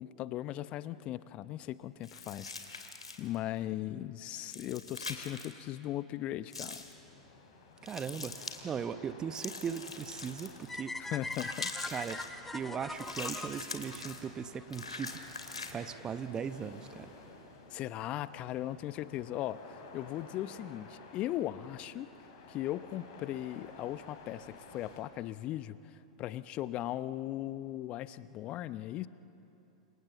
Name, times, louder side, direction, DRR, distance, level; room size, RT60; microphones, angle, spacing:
voice 1, 0.0-2.9 3.2-6.8 11.0-11.7 17.7-22.1 22.5-29.1, left 13 dB, 35° left, 15 dB, 0.9 m, -38 dB
sound 1, 2.0-3.3 4.4-5.5 6.5-6.9 7.9-8.6 9.3-10.7 11.3-12.3 13.0-14.2 14.7-15.7, left 3 dB, 85° left, 2.6 m, -43 dB
sound 2, 6.7-25.0, left 3 dB, 55° left, 6.0 m, -54 dB
voice 2, 7.8-10.9 11.9-12.2 12.5-15.2 15.7-17.1, right 7 dB, 25° right, 12 dB, 1.1 m, -38 dB
sound 3, 10.7-14.8, left 2 dB, 10° left, 1.1 m, -42 dB
30.0 x 27.0 x 7.3 m, 2.8 s
figure-of-eight pair, 95°, 3 cm